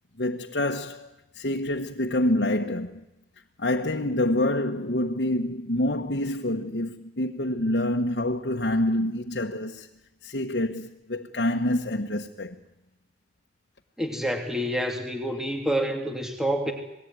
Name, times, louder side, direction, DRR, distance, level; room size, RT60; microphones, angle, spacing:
voice 1, 0.2-3.0 3.6-9.9 10.2-12.6, left 1 dB, 75° left, 1.3 m, -27 dB
voice 2, 14.0-16.7, equal, 5° right, 3.0 m, -28 dB
27.0 x 19.5 x 9.6 m
head